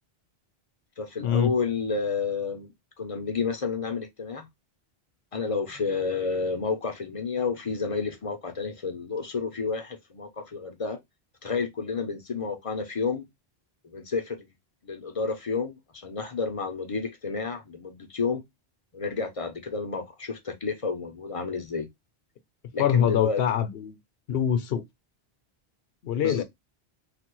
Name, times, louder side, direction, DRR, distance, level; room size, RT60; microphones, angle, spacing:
voice 1, 1.0-2.7 3.0-4.5 5.3-11.0 11.4-13.3 13.8-14.5 14.8-18.4 18.9-21.9 22.7-23.4 26.2-26.4, left 5 dB, 45° left, 0.5 m, -30 dB
voice 2, 22.8-24.0 24.3-24.8 26.0-26.4, left 9 dB, 70° left, 0.8 m, -24 dB
3.2 x 2.1 x 2.9 m
omnidirectional pair, 1.1 m